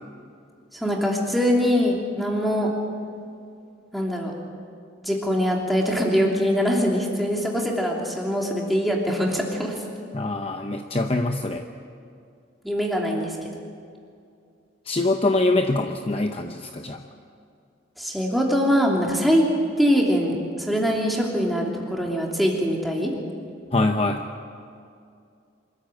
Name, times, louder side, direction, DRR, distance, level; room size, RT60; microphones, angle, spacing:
voice 1, 0.7-2.7 3.9-4.3 5.0-9.8 12.6-13.5 18.0-19.5 19.8-23.1, equal, ahead, -1 dB, 2.9 m, -23 dB
voice 2, 10.1-11.6 14.9-17.0 23.7-24.2, left 2 dB, 30° left, 5 dB, 0.8 m, -24 dB
25.5 x 14.0 x 9.1 m, 2.4 s
head